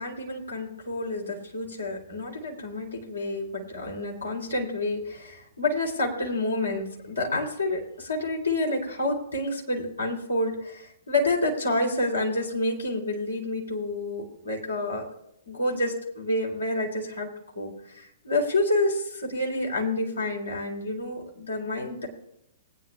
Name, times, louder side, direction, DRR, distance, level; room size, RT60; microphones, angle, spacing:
voice 1, 0.0-15.0 15.5-17.3 17.5-22.1, left 2 dB, 75° left, -1 dB, 3.0 m, -29 dB
20.0 x 9.6 x 2.3 m, 0.78 s
figure-of-eight pair, 115°, 0 cm